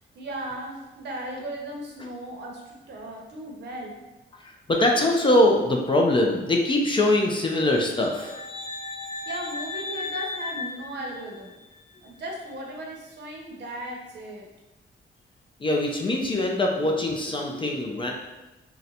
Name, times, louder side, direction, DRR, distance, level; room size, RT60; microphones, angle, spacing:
voice 1, 0.1-4.0 9.3-11.5 12.0-14.5, right 1 dB, 65° right, 0 dB, 0.7 m, -36 dB
voice 2, 4.4-8.4 15.6-18.1, left 1 dB, 25° left, 1 dB, 0.4 m, -22 dB
sound 1, 7.7-11.7, left 3 dB, 50° left, 1.2 m, -36 dB
3.8 x 2.1 x 2.8 m, 1.0 s
wide cardioid pair, 130°, 19 cm